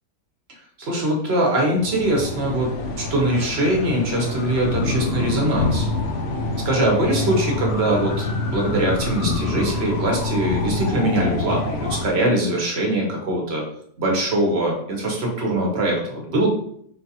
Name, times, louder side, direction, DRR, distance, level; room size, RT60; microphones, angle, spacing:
voice 1, 0.8-2.7 3.0-5.9 6.6-13.6 14.0-16.5, right 1 dB, 50° right, -1 dB, 1.0 m, -22 dB
sound 1, 1.8-12.1, left 2 dB, 70° left, 0.6 m, -26 dB
3.9 x 2.4 x 2.7 m, 0.66 s
omnidirectional pair, 1.6 m